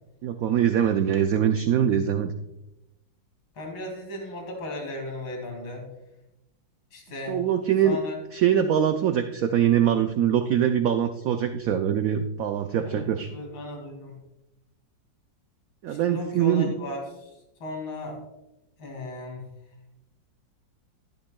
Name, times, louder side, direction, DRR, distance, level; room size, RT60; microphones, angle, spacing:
voice 1, 0.2-2.3 7.3-8.0 8.3-13.3 15.8-16.7, right 9 dB, 90° right, 7 dB, 0.7 m, -23 dB
voice 2, 3.5-5.9 6.9-7.4 7.8-8.2 12.8-14.2 15.9-17.3 17.6-18.2 18.8-19.4, left 1 dB, 90° left, 1 dB, 3.0 m, -36 dB
13.5 x 11.5 x 2.2 m, 0.92 s
omnidirectional pair, 2.1 m